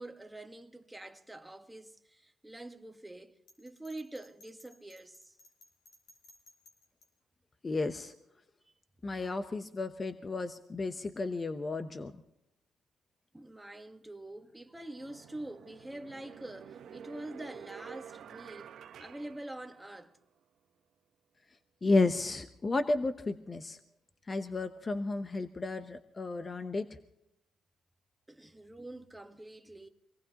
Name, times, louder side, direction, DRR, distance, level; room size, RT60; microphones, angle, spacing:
voice 1, 0.0-5.4 13.3-18.7 19.0-20.1 28.3-29.9, right 1 dB, 10° right, 1.4 m, -46 dB
Bell, 3.5-7.1, left 2 dB, 65° left, 5.5 m, -60 dB
voice 2, 7.6-8.1 9.0-12.1 21.8-23.8 24.3-26.9, left 3 dB, 30° left, 0.9 m, -32 dB
sound 1, 14.2-14.4 15.0-20.2, right 8 dB, 65° right, 0.9 m, -50 dB
25.0 x 19.0 x 3.0 m
cardioid pair, 90°, 0 cm